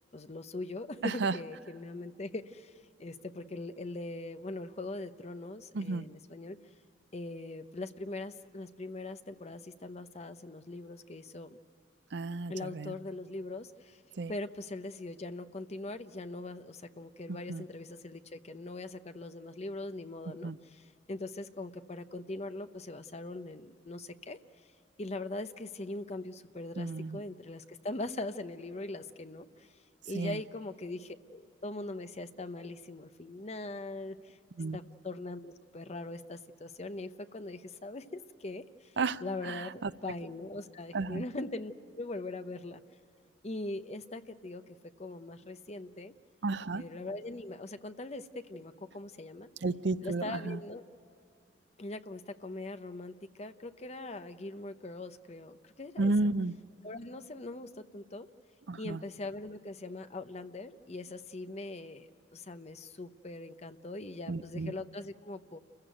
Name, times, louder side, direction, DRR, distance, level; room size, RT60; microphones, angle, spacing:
voice 1, 0.1-2.7 3.0-6.6 7.1-11.6 12.5-14.0 14.3-20.8 21.1-24.4 25.0-29.5 30.1-34.4 34.7-38.6 39.2-42.8 43.4-46.1 46.7-49.5 50.0-50.8 51.8-56.1 56.8-58.3 58.8-62.1 62.3-65.6, left 2 dB, 35° left, 10 dB, 0.8 m, -41 dB
voice 2, 1.0-1.4 5.7-6.0 12.1-12.9 14.2-14.3 17.5-17.6 20.4-20.6 26.8-27.2 30.1-30.4 34.6-34.8 39.0-39.9 40.9-41.2 46.4-46.8 49.6-50.6 56.0-56.5 58.7-59.0 64.3-64.7, right 3 dB, 70° right, 15 dB, 0.6 m, -32 dB
29.0 x 15.5 x 9.2 m, 2.7 s
head